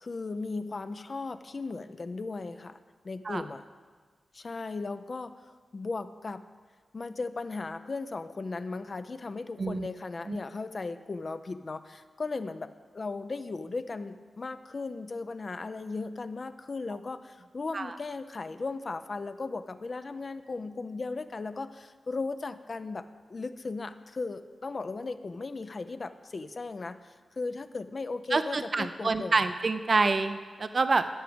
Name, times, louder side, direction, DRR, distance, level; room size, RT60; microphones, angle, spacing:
voice 1, 0.0-2.8 3.0-3.6 4.3-6.5 6.9-29.4, left 3 dB, 50° left, 10 dB, 0.5 m, -37 dB
voice 2, 28.3-31.1, right 3 dB, 50° right, 10 dB, 0.4 m, -27 dB
11.0 x 5.0 x 7.8 m, 1.5 s
cardioid pair, 60°, 0 cm